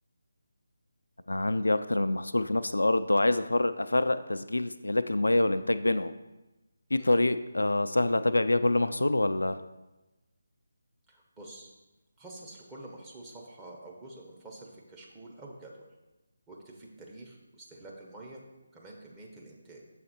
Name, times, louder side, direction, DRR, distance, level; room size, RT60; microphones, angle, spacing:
voice 1, 1.3-6.1 6.9-9.6, left 2 dB, 80° left, 10 dB, 0.3 m, -26 dB
voice 2, 11.1-11.7 12.2-15.9 16.5-18.4 18.7-19.8, right 2 dB, 15° right, -2 dB, 0.9 m, -48 dB
7.0 x 4.2 x 4.3 m, 1.1 s
figure-of-eight pair, 155°, 0 cm